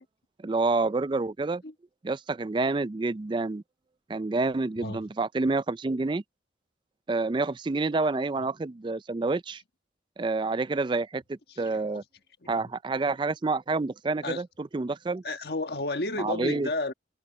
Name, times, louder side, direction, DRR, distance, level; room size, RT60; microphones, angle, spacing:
voice 1, 0.4-1.6 2.0-3.6 4.1-6.2 7.1-9.6 10.2-12.0 12.5-15.2 16.2-16.7, right 3 dB, 25° right, 0.4 m, -28 dB
voice 2, 7.9-8.2 11.5-11.8 12.4-12.7 14.2-14.4 15.2-16.9, left 2 dB, 60° left, 1.4 m, -33 dB
head